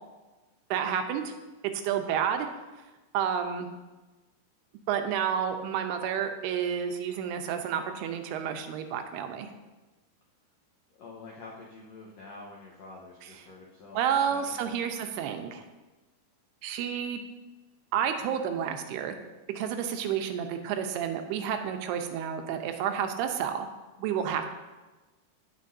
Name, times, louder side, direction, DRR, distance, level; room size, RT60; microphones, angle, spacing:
voice 1, 0.7-1.3 1.8-2.5 3.1-3.7 4.9-9.5 13.9-15.6 16.6-17.2 17.9-19.2 19.5-23.7 24.0-24.5, right 8 dB, 85° right, 6 dB, 2.8 m, -30 dB
voice 2, 11.0-14.0 14.3-14.7 24.0-24.4, left 3 dB, 85° left, -3 dB, 1.5 m, -47 dB
17.0 x 6.1 x 2.7 m, 1.2 s
omnidirectional pair, 4.6 m